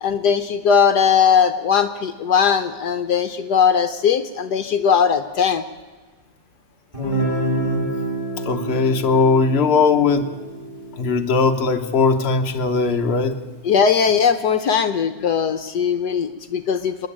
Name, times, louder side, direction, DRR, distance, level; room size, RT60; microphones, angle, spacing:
voice 1, 0.0-5.6 13.6-17.1, left 7 dB, 70° left, 9 dB, 1.4 m, -19 dB
Guitar, 6.9-12.7, right 2 dB, 15° right, 4.0 m, -30 dB
voice 2, 7.0-7.9 8.4-10.3 11.0-13.4, left 4 dB, 40° left, 4 dB, 1.3 m, -19 dB
29.0 x 10.5 x 8.8 m, 1.4 s
omnidirectional pair, 1.9 m